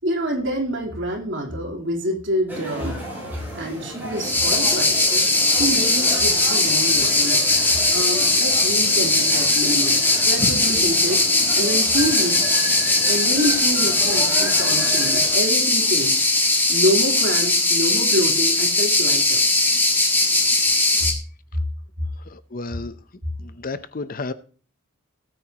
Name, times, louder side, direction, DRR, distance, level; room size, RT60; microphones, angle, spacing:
voice 1, 0.0-3.0 3.5-5.0 5.5-7.4 7.9-11.2 11.5-12.6 13.1-16.2 16.7-19.4, equal, 55° right, 3.7 m, -26 dB
sound 1, 2.5-15.4, right 1 dB, 10° right, 7.5 m, -33 dB
sound 2, 4.2-21.1, left 2 dB, 10° left, 1.7 m, -19 dB
voice 2, 22.3-23.0 23.4-24.3, left 3 dB, 40° left, 0.7 m, -31 dB
18.0 x 9.0 x 2.9 m
head